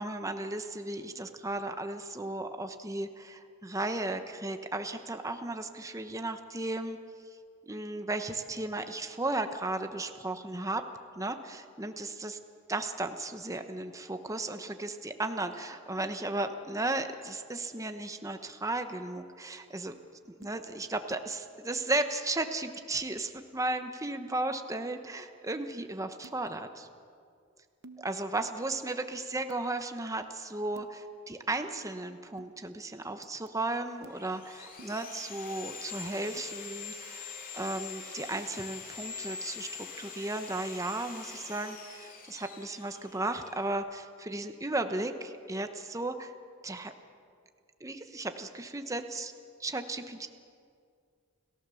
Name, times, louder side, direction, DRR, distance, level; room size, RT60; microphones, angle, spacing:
voice 1, 0.0-7.0 7.7-10.8 11.1-12.4 12.7-19.9 20.4-26.9 28.0-46.3 46.6-46.9 47.8-49.3 49.6-50.3, right 2 dB, 15° right, 7 dB, 1.0 m, -35 dB
sound 1, 20.4-20.6 21.1-21.3 26.2-26.4 27.8-28.5 29.5-29.6 30.7-30.9 32.4-32.5 33.2-33.5 34.0-34.2 34.8-34.9 36.4-36.5, right 2 dB, 55° right, 0.9 m, -52 dB
Sawing, 33.9-43.7, left 6 dB, 40° left, 2.8 m, -44 dB
30.0 x 15.5 x 7.0 m, 2.2 s
head